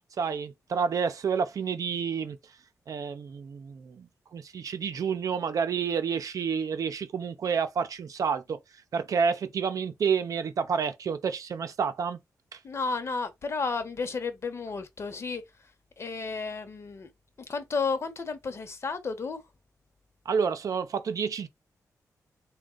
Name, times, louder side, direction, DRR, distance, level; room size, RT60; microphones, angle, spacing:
voice 1, 0.2-2.4 2.9-8.6 8.9-12.2 12.5-12.6 20.3-21.5, right 6 dB, 65° right, 0.6 m, -29 dB
voice 2, 12.6-15.7 16.0-17.1 17.4-19.4, left 4 dB, 45° left, 0.9 m, -32 dB
3.5 x 2.3 x 3.8 m
wide cardioid pair, 105°, 6 cm